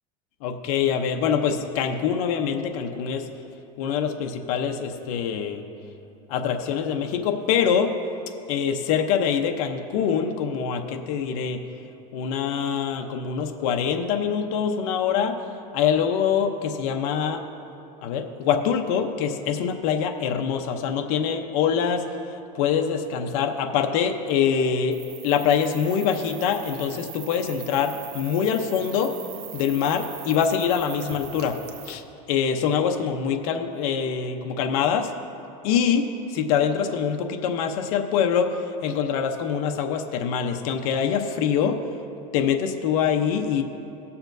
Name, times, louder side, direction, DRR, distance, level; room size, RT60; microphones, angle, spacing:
voice 1, 0.4-3.2 3.8-5.6 6.3-7.9 8.5-11.6 12.1-15.3 15.7-17.4 18.0-25.0 25.2-29.1 29.5-31.6 31.9-32.0 32.3-35.1 35.6-41.8 42.3-43.6, left 7 dB, 65° left, 5 dB, 0.8 m, -24 dB
sound 1, 24.9-31.9, right 10 dB, 85° right, 0.9 m, -41 dB
18.0 x 7.0 x 2.7 m, 2.9 s
supercardioid pair, 145°, 20 cm